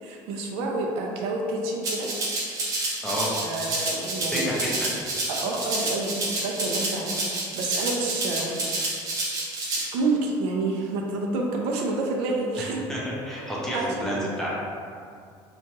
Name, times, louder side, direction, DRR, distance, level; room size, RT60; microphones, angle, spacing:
voice 1, 0.0-2.1 3.4-4.5 5.3-7.3 7.5-8.6 9.9-12.9 13.3-13.4 13.7-14.1, right 2 dB, 85° right, 0 dB, 0.4 m, -28 dB
Rattle (instrument), 1.8-9.8, right 2 dB, 35° right, 0.6 m, -29 dB
voice 2, 3.0-3.3 4.3-4.9 12.6-14.5, equal, 5° left, -6 dB, 0.3 m, -30 dB
2.8 x 2.2 x 2.9 m, 2.3 s
cardioid pair, 170°, 10 cm